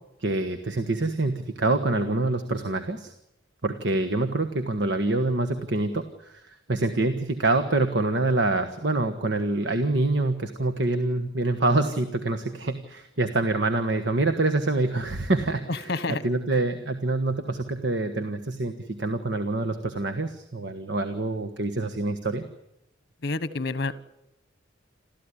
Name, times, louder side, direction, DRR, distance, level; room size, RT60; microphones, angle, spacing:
voice 1, 0.2-3.1 3.6-22.4, right 2 dB, 65° right, 7 dB, 1.4 m, -26 dB
voice 2, 15.7-16.2 23.2-23.9, left 3 dB, 55° left, 15 dB, 1.3 m, -28 dB
28.0 x 14.0 x 10.0 m, 0.83 s
head